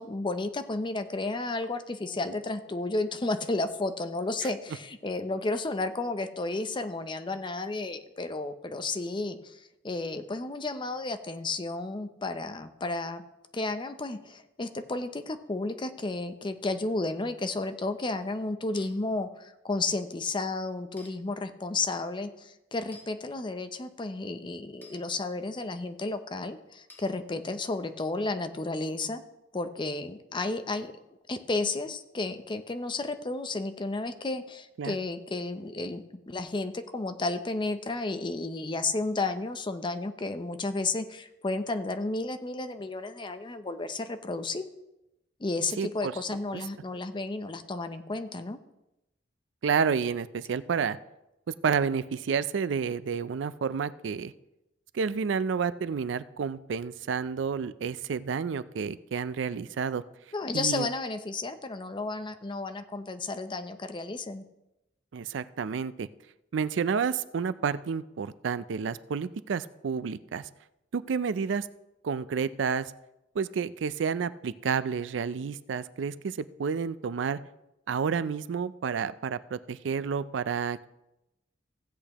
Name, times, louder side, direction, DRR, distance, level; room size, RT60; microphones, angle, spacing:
voice 1, 0.0-9.6 9.8-13.2 13.5-29.2 29.5-30.9 31.3-44.6 45.4-48.6 60.3-64.5, left 2 dB, 25° left, 9 dB, 0.6 m, -32 dB
sound 1, 18.7-18.9 21.0-21.1 22.9-23.1 24.8-25.0 26.9-27.1, left 1 dB, 10° left, 1.6 m, -51 dB
voice 2, 45.8-46.2 46.5-46.6 49.6-51.0 51.5-54.3 54.9-60.0 60.5-60.9 65.1-66.1 66.5-70.5 70.9-71.7 72.0-72.9 73.3-77.4 77.9-80.9, right 6 dB, 75° right, 15 dB, 0.4 m, -30 dB
15.5 x 8.3 x 3.0 m, 0.92 s
head